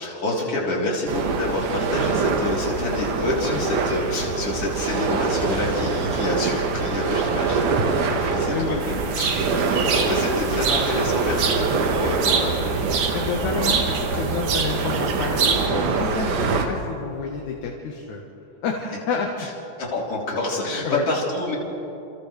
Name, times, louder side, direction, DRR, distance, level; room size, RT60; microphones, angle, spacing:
voice 1, 0.0-12.8 19.4-19.5 19.8-21.6, left 2 dB, 45° left, -4 dB, 4.7 m, -27 dB
sound 1, 1.1-16.7, right 4 dB, 70° right, 3.0 m, -24 dB
voice 2, 3.5-3.8 8.5-8.8 9.5-9.8 13.1-18.2 18.6-19.3 20.8-21.1, left 5 dB, 70° left, 0 dB, 2.7 m, -29 dB
sound 2, 8.8-15.7, right 5 dB, 55° right, 2.0 m, -27 dB
29.5 x 28.0 x 3.4 m, 2.9 s
omnidirectional pair, 3.7 m